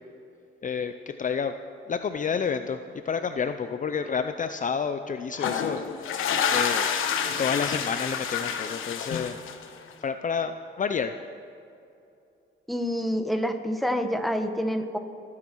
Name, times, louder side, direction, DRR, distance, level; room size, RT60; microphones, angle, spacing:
voice 1, 0.6-1.6 1.9-2.8 3.0-6.2 6.5-6.9 7.4-9.4 10.0-11.2, left 6 dB, 40° left, 9 dB, 0.6 m, -29 dB
sound 1, 5.3-9.9, left 7 dB, 90° left, 1.2 m, -28 dB
voice 2, 12.7-15.0, equal, ahead, 5 dB, 1.4 m, -27 dB
29.0 x 9.7 x 4.7 m, 2.6 s
cardioid pair, 95°, 20 cm